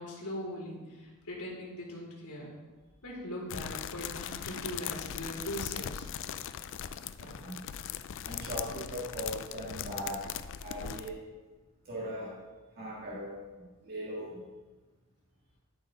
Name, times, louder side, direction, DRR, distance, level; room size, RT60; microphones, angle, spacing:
voice 1, 0.0-2.5 3.0-6.0, equal, 85° left, -4 dB, 3.4 m, -40 dB
sound 1, 3.5-11.1, left 9 dB, 60° left, 0.4 m, -39 dB
voice 2, 7.2-7.7 8.2-10.3 10.6-11.2 11.9-12.4 12.8-14.4, equal, 45° right, -6 dB, 1.7 m, -39 dB
13.0 x 5.6 x 3.9 m, 1.2 s
head